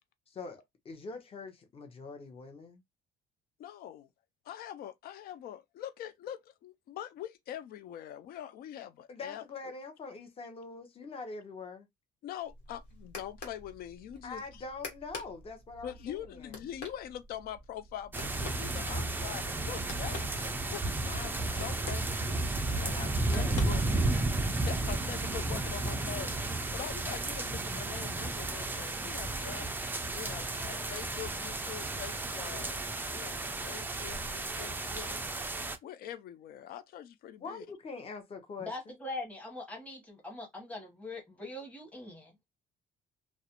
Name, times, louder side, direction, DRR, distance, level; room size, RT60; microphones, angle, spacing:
voice 1, 0.3-2.8 9.1-11.9 14.2-16.6 22.9-23.8 30.1-31.2 37.4-39.0, left 4 dB, 35° left, 0.8 m, -44 dB
voice 2, 3.6-4.1 4.5-9.4 12.2-14.4 15.8-23.8 24.4-29.7 30.1-32.8 33.1-35.3 35.8-37.6, left 11 dB, 65° left, 0.4 m, -44 dB
sound 1, 12.4-24.4, left 4 dB, 90° left, 1.0 m, -49 dB
sound 2, 18.1-35.8, right 2 dB, 10° right, 0.3 m, -33 dB
voice 3, 38.6-42.3, left 2 dB, 10° left, 1.0 m, -42 dB
2.4 x 2.1 x 2.8 m
cardioid pair, 110°, 17 cm